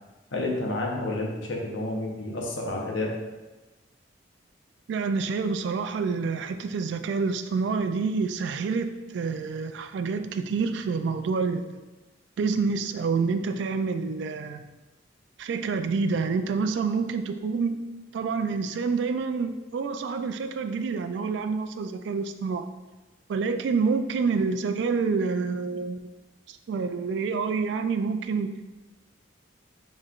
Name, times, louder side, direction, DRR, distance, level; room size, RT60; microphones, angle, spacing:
voice 1, 0.3-3.1, left 2 dB, 85° left, -1 dB, 0.9 m, -30 dB
voice 2, 4.9-11.8 12.4-14.7 15.4-17.8 18.1-22.7 23.3-26.2 26.5-28.5, right 4 dB, 65° right, 8 dB, 0.3 m, -28 dB
5.5 x 3.2 x 2.4 m, 1.2 s
head